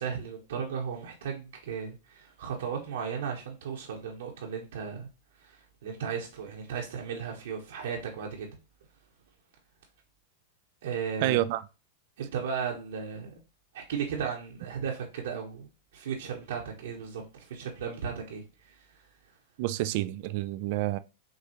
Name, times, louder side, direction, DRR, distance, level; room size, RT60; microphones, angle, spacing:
voice 1, 0.0-5.1 5.4-8.5 10.8-11.4 12.2-13.4 13.7-19.0, right 6 dB, 75° right, 1.0 m, -35 dB
voice 2, 11.2-11.6 19.6-21.0, right 16 dB, 55° right, 0.3 m, -28 dB
6.5 x 2.3 x 2.9 m
hypercardioid pair, 120°, 0 cm